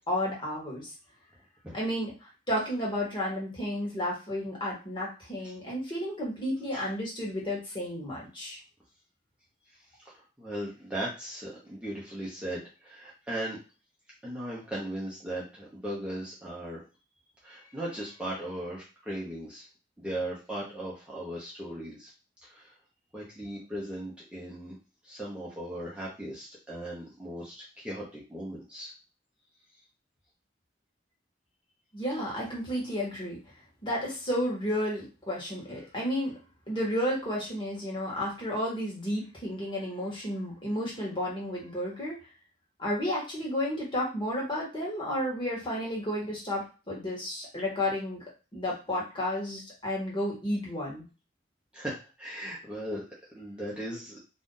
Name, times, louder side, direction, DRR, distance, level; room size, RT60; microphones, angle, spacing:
voice 1, 0.1-0.9 1.7-2.1 2.5-8.6 31.9-33.4 33.8-36.3 36.7-42.2 42.8-48.2 48.5-51.0, left 1 dB, 25° left, -4 dB, 1.3 m, -32 dB
voice 2, 10.0-13.6 14.2-16.8 17.4-19.7 20.0-22.1 22.4-22.7 23.1-24.8 25.0-28.9 51.7-53.0 53.3-54.2, right 1 dB, 5° right, -7 dB, 0.8 m, -38 dB
2.6 x 2.5 x 3.7 m, 0.32 s
head